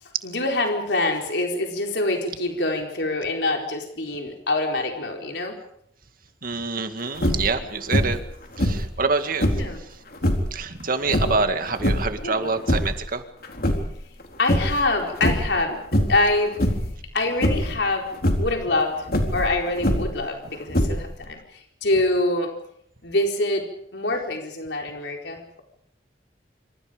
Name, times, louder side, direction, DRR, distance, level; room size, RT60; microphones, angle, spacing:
voice 1, 0.2-5.6 9.5-9.8 11.2-11.3 12.2-12.5 14.4-15.8 16.1-16.6 17.1-18.1 18.4-19.0 19.3-21.4 21.8-22.5 23.0-23.7 23.9-25.6, left 2 dB, 80° left, 2 dB, 4.3 m, -25 dB
voice 2, 6.4-8.2 8.6-9.5 10.5-13.2, right 4 dB, 55° right, 8 dB, 2.1 m, -26 dB
sound 1, 7.1-7.6 7.9-8.3 8.6-9.7 10.2-10.5 11.1-12.2 12.5-13.1 13.4-14.2 14.5-14.9 15.2-15.6 15.9-16.3 16.6-17.0 17.4-17.8 18.1-18.5 19.1-20.2 20.7-21.2, equal, 60° left, 3.9 m, -23 dB
26.5 x 26.5 x 5.2 m, 0.69 s
head